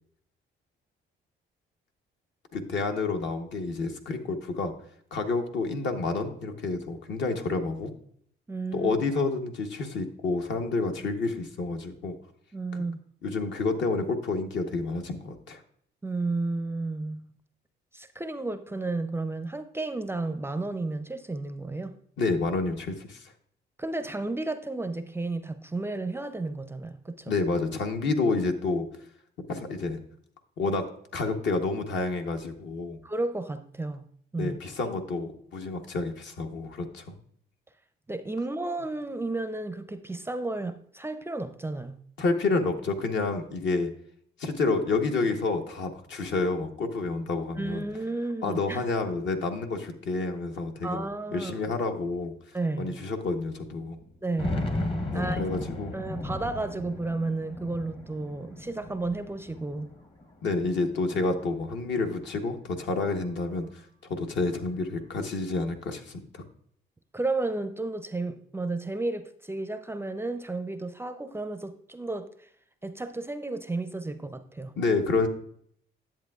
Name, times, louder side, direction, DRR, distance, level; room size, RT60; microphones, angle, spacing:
voice 1, 2.5-4.7 5.1-7.9 8.7-12.1 13.2-15.6 22.2-23.3 27.3-28.9 29.5-30.0 30.6-30.8 31.1-33.0 34.4-37.1 42.2-43.9 44.4-47.9 48.4-52.3 52.8-54.0 55.1-55.9 60.4-63.8 64.1-66.4 74.8-75.3, left 3 dB, 65° left, 1.0 m, -29 dB
voice 2, 8.5-8.9 12.5-13.0 16.0-17.3 17.9-21.9 23.8-27.3 33.0-34.0 34.3-34.6 38.1-42.0 47.6-48.9 50.8-51.6 52.5-53.0 54.2-54.6 55.1-55.5 55.9-59.9 67.1-72.5 72.8-74.7, right 2 dB, 10° right, 0.4 m, -32 dB
sound 1, 50.8-50.9 51.7-51.8 52.3-52.4 54.0-60.4 60.8-61.8, left 1 dB, 25° left, 0.8 m, -35 dB
10.5 x 7.6 x 2.3 m
cardioid pair, 90°, 20 cm